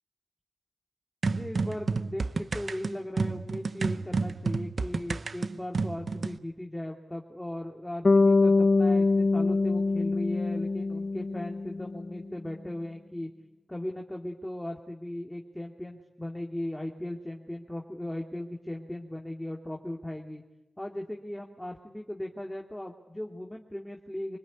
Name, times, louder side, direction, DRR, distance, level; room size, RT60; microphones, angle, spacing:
voice 1, 1.2-13.3 13.7-20.4 20.8-24.4, left 1 dB, 10° left, 1 dB, 2.5 m, -38 dB
sound 1, 1.2-6.4, right 4 dB, 65° right, 0.9 m, -30 dB
Bass guitar, 8.0-12.2, left 3 dB, 55° left, 0.9 m, -24 dB
25.5 x 20.0 x 9.4 m, 0.99 s
cardioid pair, 55°, 0 cm